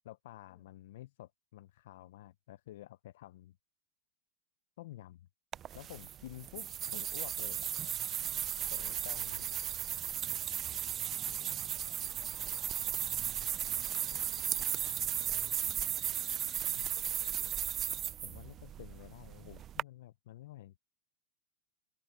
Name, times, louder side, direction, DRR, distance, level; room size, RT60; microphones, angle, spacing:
voice 1, 0.0-3.6 4.8-5.3 5.7-7.7 8.7-9.5 16.7-16.9 18.2-20.8, left 14 dB, 70° left, 0.6 m, -50 dB
sound 1, 5.5-19.8, right 10 dB, 30° right, 0.3 m, -36 dB
voice 2, 8.6-9.7 10.4-15.7 16.8-17.8, left 10 dB, 30° left, 6.1 m, -69 dB
hypercardioid pair, 130°, 0 cm